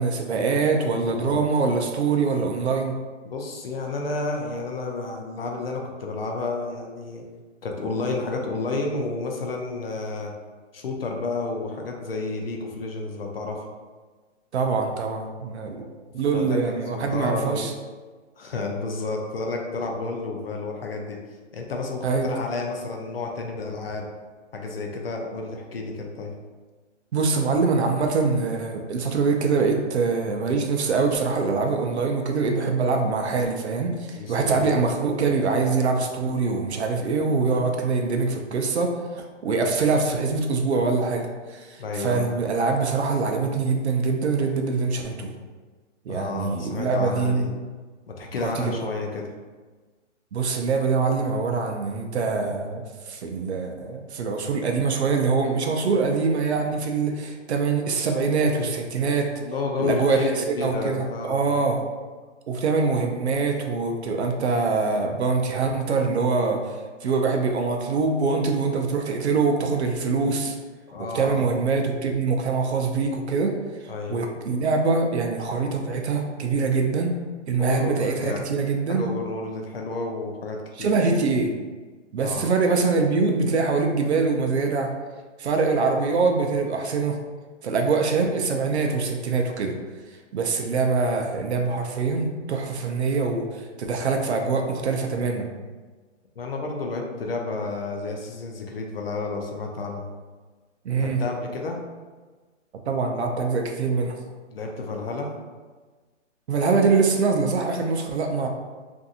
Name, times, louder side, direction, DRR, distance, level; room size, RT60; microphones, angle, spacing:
voice 1, 0.0-2.9 14.5-15.9 16.1-17.7 22.0-22.3 27.1-45.3 46.1-47.5 48.4-48.8 50.3-59.3 59.8-61.9 62.5-66.7 67.0-70.5 71.1-73.5 74.1-77.2 77.5-79.0 80.8-81.5 82.1-84.9 85.4-87.2 87.6-89.7 90.3-95.5 100.8-101.2 102.9-104.2 106.5-108.5, right 4 dB, 60° right, 3 dB, 0.5 m, -24 dB
voice 2, 1.1-1.4 3.2-7.2 7.6-10.3 10.7-13.7 16.3-17.7 18.4-21.2 21.5-24.1 24.5-26.3 34.1-34.8 41.8-42.4 46.1-47.5 48.1-49.3 59.4-61.6 70.9-71.6 73.9-74.2 77.6-78.5 78.9-80.9 82.2-82.5 96.4-100.1 101.0-101.8 104.5-105.3, left 3 dB, 50° left, 1 dB, 0.4 m, -31 dB
2.6 x 2.4 x 2.7 m, 1.4 s
hypercardioid pair, 175°, 37 cm